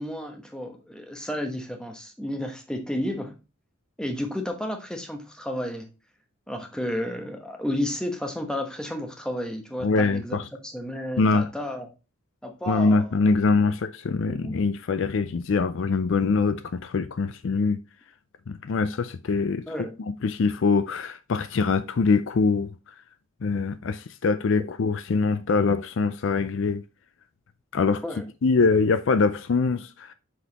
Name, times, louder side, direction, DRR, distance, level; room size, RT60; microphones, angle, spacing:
voice 1, 0.0-3.3 4.0-5.9 6.5-11.9 12.4-13.1 14.3-14.6 19.7-20.0 28.0-28.3, left 1 dB, 5° left, 1.0 m, -32 dB
voice 2, 9.8-10.4 11.2-11.5 12.7-17.8 18.5-19.6 20.2-22.7 23.4-26.8 27.7-28.0 28.4-30.1, left 4 dB, 55° left, 0.4 m, -23 dB
6.1 x 5.4 x 2.9 m
head